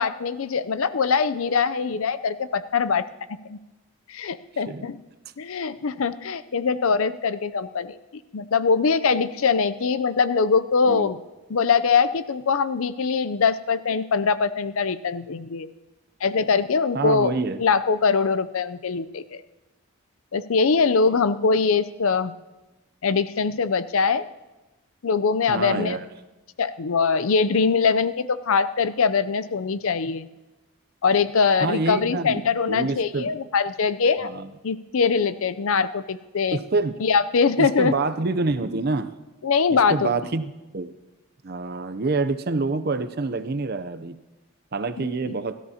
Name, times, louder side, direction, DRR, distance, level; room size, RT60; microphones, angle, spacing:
voice 1, 0.0-3.0 3.4-3.6 4.1-5.0 5.4-8.0 8.3-11.2 11.5-15.7 16.2-17.3 17.6-19.4 20.3-22.3 23.0-24.3 25.0-26.0 26.6-30.3 31.0-34.3 34.6-36.6 37.0-37.9 39.4-40.1 45.0-45.3, left 5 dB, 70° left, 14 dB, 0.5 m, -22 dB
voice 2, 16.9-17.6 25.5-26.1 31.6-33.4 34.2-34.5 36.5-37.0 37.6-39.1 39.7-40.9 41.4-44.2 44.7-45.5, right 3 dB, 45° right, 11 dB, 0.6 m, -27 dB
28.0 x 13.0 x 2.8 m, 1.1 s
head